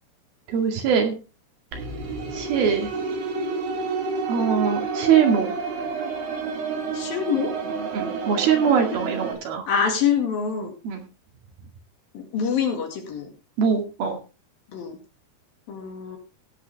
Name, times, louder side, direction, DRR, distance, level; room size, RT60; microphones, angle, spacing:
voice 1, 0.5-1.2 1.7-1.8 2.3-2.9 4.3-5.5 7.9-9.7 10.8-11.0 13.6-14.2, right 7 dB, 70° right, 3 dB, 4.0 m, -22 dB
sound 1, 1.7-9.3, right 4 dB, 90° right, 5.2 m, -29 dB
voice 2, 6.9-7.5 9.7-10.7 12.1-13.3 14.7-15.0 15.7-16.2, left 7 dB, 65° left, 4 dB, 3.7 m, -25 dB
17.0 x 8.6 x 3.5 m, 0.31 s
omnidirectional pair, 4.6 m